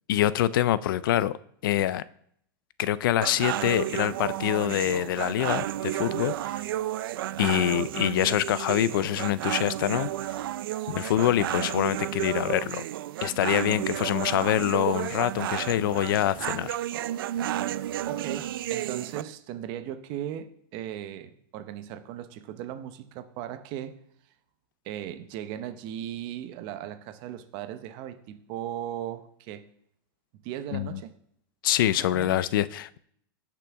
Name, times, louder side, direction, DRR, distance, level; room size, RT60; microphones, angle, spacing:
voice 1, 0.1-1.4 1.6-2.0 2.8-6.6 7.4-10.1 10.9-12.8 13.2-16.8 30.7-31.0 31.6-33.0, left 13 dB, 70° left, 0.4 m, -25 dB
sound 1, 3.2-19.2, right 13 dB, 80° right, 0.4 m, -32 dB
voice 2, 10.8-11.1 18.1-24.0 24.8-29.7 30.3-31.1 31.9-32.5, right 11 dB, 40° right, 0.8 m, -37 dB
16.5 x 5.9 x 3.6 m
supercardioid pair, 155°, 12 cm